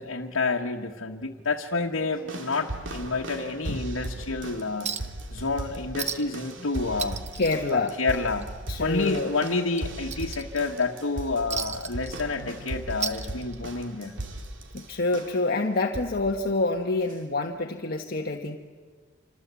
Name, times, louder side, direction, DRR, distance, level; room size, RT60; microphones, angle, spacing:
voice 1, 0.0-4.9 5.3-7.2 7.7-8.5 8.8-14.1, left 3 dB, 80° left, -1 dB, 1.5 m, -29 dB
sound 1, 2.3-15.5 15.9-16.3 17.1-17.2, right 1 dB, 65° right, 2.5 m, -38 dB
Chink clink, 4.9-5.2 5.5-5.6 6.0-6.4 6.7-8.4 8.8-9.0 9.4-10.8 11.5-12.6 12.9-13.8 14.9-15.0, right 7 dB, 35° right, 1.0 m, -35 dB
voice 2, 7.4-8.0 8.7-9.3 14.7-18.6, left 2 dB, 50° left, 2 dB, 1.3 m, -27 dB
27.0 x 26.0 x 8.3 m, 1.5 s
head